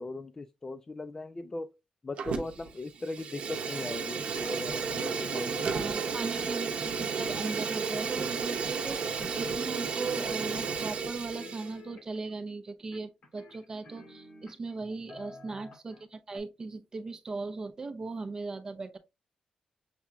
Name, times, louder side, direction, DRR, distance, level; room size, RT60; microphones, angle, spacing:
voice 1, 0.0-1.7 2.0-6.0, left 2 dB, 25° left, 0.3 m, -39 dB
Fire, 2.2-2.7 3.0-11.7, right 5 dB, 65° right, 0.8 m, -33 dB
sound 1, 4.0-4.8 5.1-7.3 7.9-8.6 8.8-9.8 10.1-11.0 11.3-12.3 12.9-14.7 15.1-16.0 16.3-16.4, left 1 dB, 65° left, 2.2 m, -49 dB
voice 2, 5.7-19.0, right 3 dB, 30° right, 0.6 m, -38 dB
6.7 x 2.8 x 2.3 m
wide cardioid pair, 140°, 2 cm